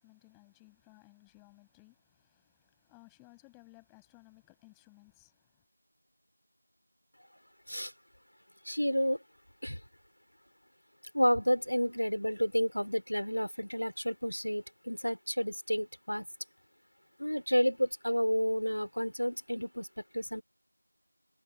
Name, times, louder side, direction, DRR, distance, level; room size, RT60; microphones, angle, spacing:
voice 1, 0.0-5.7, left 40 dB or more, ahead, 7.0 m, -60 dB
voice 2, 8.7-9.2 9.6-9.8 11.1-16.3 17.2-19.9 20.1-20.4, equal, 70° left, 3.8 m, -30 dB
figure-of-eight pair, 175°, 0 cm